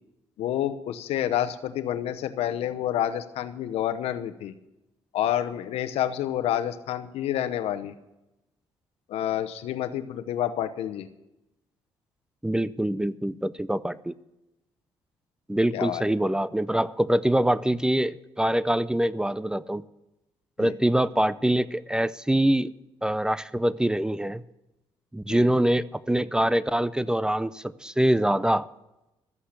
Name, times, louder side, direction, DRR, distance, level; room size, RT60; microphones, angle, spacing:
voice 1, 0.4-4.5 5.1-7.9 9.1-11.1 15.7-16.0 20.6-20.7 25.3-25.5, left 11 dB, 85° left, 10 dB, 0.9 m, -28 dB
voice 2, 12.4-14.1 15.5-19.8 20.6-22.7 23.0-24.4 25.1-28.7, right 1 dB, 5° right, 17 dB, 0.5 m, -24 dB
13.5 x 8.6 x 8.1 m, 0.93 s
cardioid pair, 80°, 10 cm